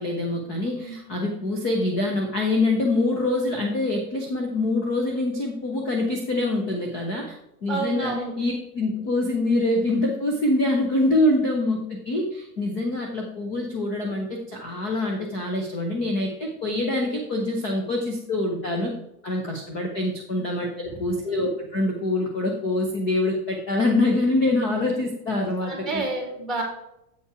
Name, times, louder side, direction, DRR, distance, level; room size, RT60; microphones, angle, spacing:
voice 1, 0.0-7.4 7.6-18.9 19.2-26.0, left 2 dB, 20° left, 1 dB, 0.4 m, -25 dB
voice 2, 7.7-8.3 20.9-21.0 21.3-21.4 25.6-26.6, right 2 dB, ahead, 0 dB, 2.0 m, -30 dB
7.9 x 5.3 x 4.7 m, 0.83 s
supercardioid pair, 175°, 46 cm